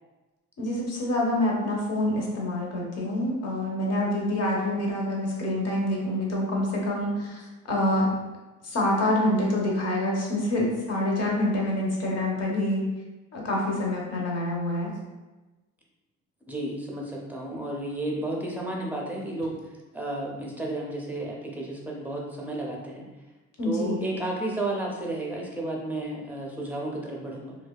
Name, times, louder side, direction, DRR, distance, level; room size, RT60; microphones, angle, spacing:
voice 1, 0.6-8.1 8.6-12.8 13.3-14.9 23.6-24.2, left 1 dB, 55° left, -2 dB, 0.8 m, -26 dB
voice 2, 16.5-19.6 19.9-23.1 23.6-27.5, right 1 dB, 5° right, -2 dB, 0.5 m, -32 dB
2.7 x 2.2 x 2.2 m, 1.2 s
cardioid pair, 90°, 30 cm